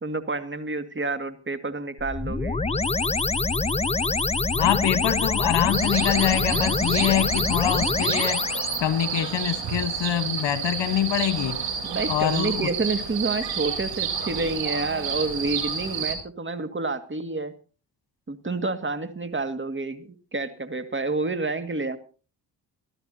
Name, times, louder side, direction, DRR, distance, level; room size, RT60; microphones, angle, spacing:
voice 1, 0.0-2.6 11.8-17.5 18.3-22.0, right 3 dB, 25° right, 2.1 m, -29 dB
sound 1, 2.0-8.8, left 3 dB, 15° left, 0.8 m, -25 dB
voice 2, 4.5-8.5 8.8-11.6 12.1-12.7, left 11 dB, 75° left, 1.4 m, -25 dB
sound 2, 5.7-16.1, right 7 dB, 90° right, 3.9 m, -30 dB
25.0 x 13.0 x 2.8 m
cardioid pair, 60°, 43 cm